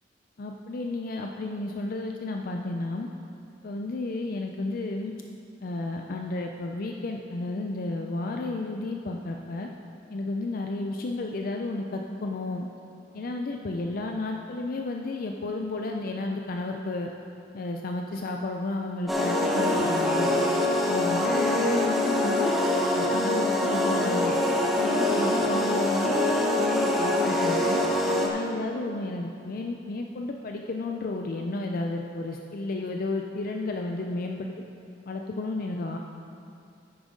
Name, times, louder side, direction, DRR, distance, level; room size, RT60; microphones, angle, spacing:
voice 1, 0.4-3.1 3.6-5.1 5.6-9.7 10.1-12.7 13.1-17.1 17.5-20.3 20.9-22.5 22.9-26.2 26.5-27.8 28.2-34.5 35.1-36.0, left 2 dB, 50° left, 2 dB, 0.4 m, -32 dB
sound 1, 19.1-28.3, left 1 dB, ahead, 0.9 m, -24 dB
10.0 x 8.9 x 3.7 m, 2.6 s
head